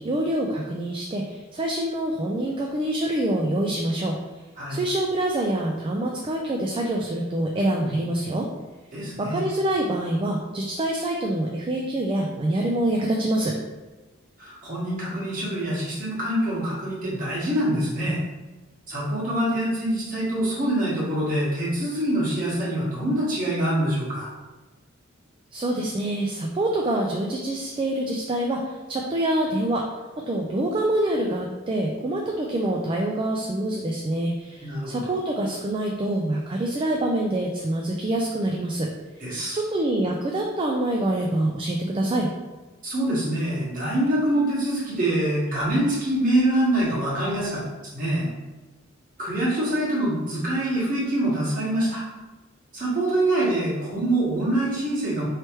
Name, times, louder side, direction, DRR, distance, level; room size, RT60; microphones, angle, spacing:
voice 1, 0.0-4.2 4.7-8.5 9.2-13.6 25.5-29.9 30.2-38.9 39.5-42.3, right 1 dB, 25° right, 0 dB, 0.3 m, -26 dB
voice 2, 8.9-9.4 14.4-18.2 18.9-24.3 34.6-35.1 39.2-39.6 42.8-47.6 47.9-48.3 49.2-52.0 52.7-55.3, right 1 dB, 40° right, -7 dB, 1.5 m, -25 dB
4.4 x 3.2 x 3.0 m, 1.2 s
head